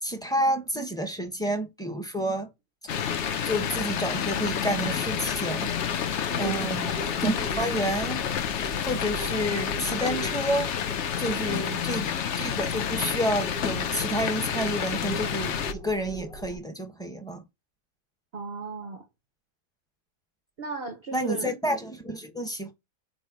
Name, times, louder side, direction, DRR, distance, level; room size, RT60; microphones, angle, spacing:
voice 1, 0.0-2.5 3.4-5.7 6.4-6.9 7.2-8.2 8.8-10.7 11.2-12.1 12.4-17.4 21.1-22.7, right 1 dB, 5° left, 0.7 m, -29 dB
sound 1, 2.9-15.7, left 8 dB, 80° left, 0.6 m, -29 dB
sound 2, 2.9-16.6, right 1 dB, 45° left, 2.2 m, -41 dB
voice 2, 6.3-6.7 11.5-11.8 18.3-19.0 20.6-21.5, right 4 dB, 55° right, 0.6 m, -36 dB
5.3 x 4.8 x 6.1 m
omnidirectional pair, 2.1 m